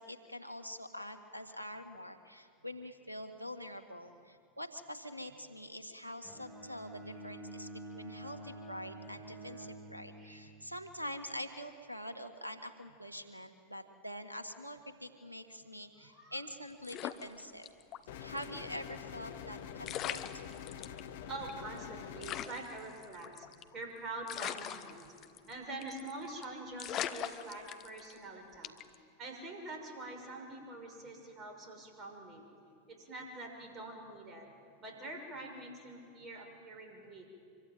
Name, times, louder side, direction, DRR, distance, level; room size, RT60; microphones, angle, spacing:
voice 1, 0.0-17.7 18.2-20.4, equal, 90° right, 9 dB, 1.8 m, -45 dB
Bowed string instrument, 6.2-10.5, right 1 dB, 10° right, 7.8 m, -48 dB
voice 2, 10.1-10.8 15.9-16.5 18.0-18.1 20.7-20.9 21.3-23.5 23.7-25.1 25.5-28.7 29.2-32.5 32.9-34.5 34.8-37.3, right 2 dB, 30° right, 3 dB, 6.3 m, -45 dB
sound 1, 16.8-18.0 18.4-18.5 19.5-19.6 19.8-21.0 21.5-21.6 21.8-21.9 22.2-23.8 24.3-25.5 25.8-26.1 26.4-26.5 26.8-28.2 28.6-28.9, left 11 dB, 35° left, 1.2 m, -40 dB
sound 2, 18.1-22.5, left 9 dB, 55° left, 1.5 m, -46 dB
26.0 x 23.5 x 9.1 m, 2.4 s
figure-of-eight pair, 90°, 0 cm